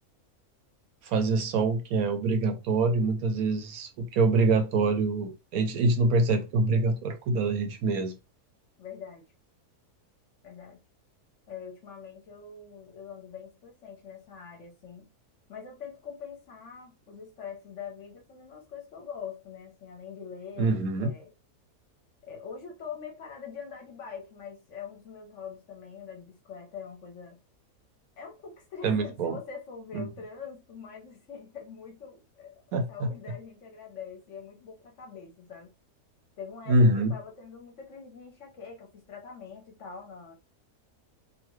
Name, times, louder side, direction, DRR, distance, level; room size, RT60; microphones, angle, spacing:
voice 1, 1.0-8.2 20.6-21.1 28.8-29.4 29.9-30.1 32.7-32.8 36.7-37.1, right 3 dB, 75° right, 1.0 m, -25 dB
voice 2, 8.8-9.2 10.4-10.8 11.5-15.1 15.5-21.3 22.2-27.4 28.2-35.7 36.4-40.4, left 6 dB, 60° left, 0.9 m, -43 dB
2.7 x 2.4 x 3.0 m
omnidirectional pair, 1.7 m